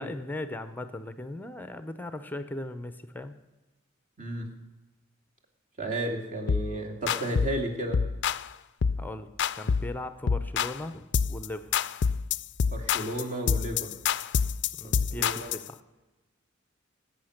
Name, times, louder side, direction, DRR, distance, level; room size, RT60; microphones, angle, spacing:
voice 1, 0.0-3.4 9.0-9.3 9.6-11.9 14.8-15.8, left 1 dB, 10° left, 11 dB, 0.7 m, -38 dB
voice 2, 5.8-8.0 12.7-13.9 14.8-15.5, right 1 dB, 40° right, 2 dB, 2.6 m, -33 dB
sound 1, 6.5-6.7 7.1-7.6 7.9-8.5 8.8-9.1 9.4-9.9 10.3-10.8 11.1-11.5 11.7-15.7, left 6 dB, 60° left, 0.4 m, -27 dB
19.0 x 8.9 x 6.5 m, 1.1 s
head